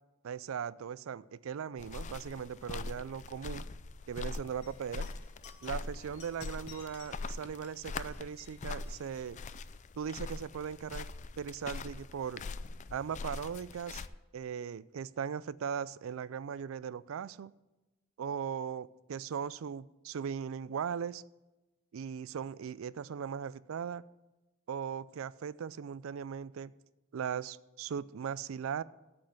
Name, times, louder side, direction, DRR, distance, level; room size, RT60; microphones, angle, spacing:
voice 1, 0.2-3.7 4.1-5.1 5.6-9.4 10.0-11.1 11.4-12.4 12.9-14.0 14.3-17.5 18.2-21.2 21.9-24.0 24.7-26.7 27.1-28.8, right 7 dB, 75° right, 20 dB, 0.4 m, -38 dB
sound 1, 1.8-14.1, left 3 dB, 35° left, 0.4 m, -42 dB
sound 2, 4.6-9.5, left 6 dB, 55° left, 2.1 m, -58 dB
8.7 x 7.5 x 7.9 m, 1.1 s
head